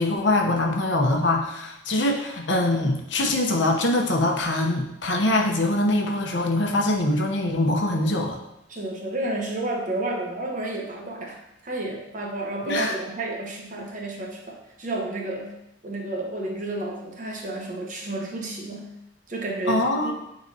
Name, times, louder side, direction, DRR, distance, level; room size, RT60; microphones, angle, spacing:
voice 1, 0.0-8.4 12.7-12.9 19.7-20.1, left 1 dB, 70° left, 2 dB, 0.9 m, -23 dB
voice 2, 8.7-11.4 11.6-15.6 15.8-18.9 19.3-20.1, right 2 dB, 45° right, -1 dB, 1.0 m, -31 dB
9.5 x 4.0 x 2.8 m, 0.85 s
head